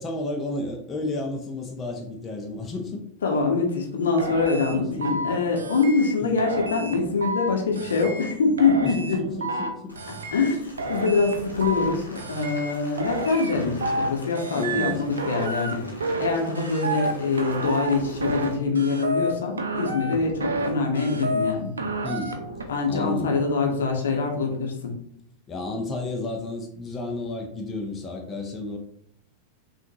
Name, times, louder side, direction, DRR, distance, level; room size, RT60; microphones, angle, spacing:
voice 1, 0.0-3.0 4.7-5.1 6.2-6.3 8.8-9.9 14.5-15.0 20.1-20.3 22.0-22.4 22.9-23.4 25.5-28.8, left 2 dB, 20° left, 1 dB, 0.7 m, -32 dB
voice 2, 3.2-9.2 10.3-15.9 16.2-21.7 22.7-25.0, left 4 dB, 65° left, 1 dB, 0.9 m, -24 dB
sound 1, 4.2-5.3 5.6-6.1 6.4-7.5 7.8-8.3 8.6-9.7 10.0-10.5 10.8-11.9 12.2-12.7 13.0-14.1 14.4-14.9 15.2-16.3 16.6-17.1 17.4-18.5 18.8-19.3 19.6-20.7 21.0-21.5 21.8-22.6, right 2 dB, 70° right, 0.6 m, -30 dB
Rain, 9.9-18.6, left 1 dB, 90° left, 1.0 m, -45 dB
5.7 x 2.5 x 2.9 m, 0.68 s
figure-of-eight pair, 90°, 0 cm